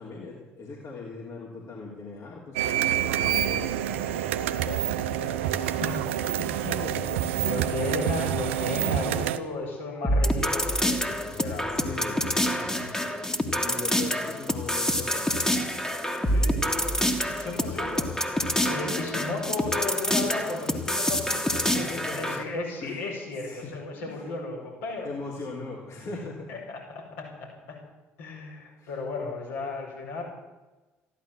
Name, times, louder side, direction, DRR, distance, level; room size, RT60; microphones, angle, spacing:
voice 1, 0.0-3.7 6.6-7.6 11.7-12.4 13.6-15.3 21.5-22.4 22.8-23.0 23.4-24.3 25.0-26.5 28.8-28.9, left 3 dB, 50° left, -3 dB, 3.3 m, -39 dB
sound 1, 2.6-9.4, right 11 dB, 75° right, 0.7 m, -27 dB
voice 2, 4.5-6.0 6.4-6.6 7.4-11.9 12.6-12.8 16.3-16.6 16.9-17.1 17.3-18.3 18.7-25.1 26.5-27.8 28.2-30.2, left 3 dB, 75° left, -3 dB, 5.4 m, -35 dB
sound 2, 10.0-22.4, equal, 10° left, 2.2 m, -27 dB
14.5 x 11.5 x 7.5 m, 1.2 s
figure-of-eight pair, 50°, 7 cm